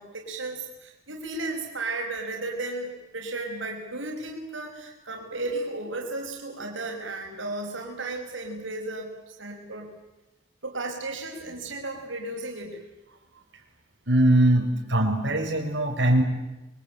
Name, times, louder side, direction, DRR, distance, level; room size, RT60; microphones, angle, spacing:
voice 1, 0.0-9.9 10.6-12.8, right 2 dB, 90° right, 0 dB, 5.4 m, -34 dB
voice 2, 14.1-16.2, right 1 dB, 70° right, 0 dB, 5.7 m, -21 dB
28.5 x 22.5 x 9.0 m, 1.0 s
head